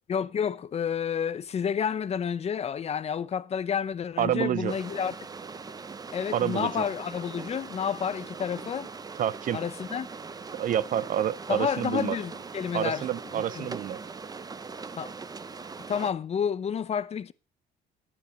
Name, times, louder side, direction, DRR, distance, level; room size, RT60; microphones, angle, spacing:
voice 1, 0.1-5.1 6.1-8.9 9.5-10.1 11.5-13.7 15.0-15.1 15.9-17.3, left 7 dB, 40° left, 0.8 m, -30 dB
voice 2, 4.2-4.7 6.3-6.7 9.2-9.6 10.5-12.2 12.7-14.0, right 10 dB, 50° right, 0.6 m, -28 dB
sound 1, 4.7-16.1, right 4 dB, 20° right, 0.8 m, -41 dB
11.5 x 10.0 x 6.1 m
cardioid pair, 110°, 17 cm